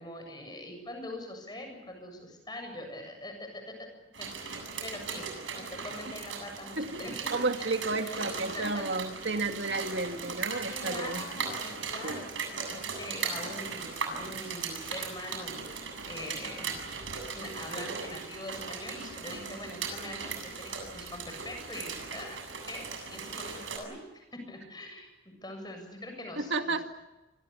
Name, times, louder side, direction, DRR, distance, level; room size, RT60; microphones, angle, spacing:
voice 1, 0.0-3.9 4.2-5.3 5.5-7.3 8.0-8.2 8.5-8.9 9.2-9.7 10.4-16.8 17.3-22.4 22.7-26.9, left 1 dB, 20° left, 5 dB, 7.4 m, -43 dB
sound 1, 4.1-23.8, right 5 dB, 80° right, 7.8 m, -38 dB
voice 2, 6.8-11.2 12.0-12.2 26.4-26.8, right 3 dB, 65° right, 6 dB, 2.2 m, -32 dB
28.5 x 25.0 x 7.0 m, 1.0 s
head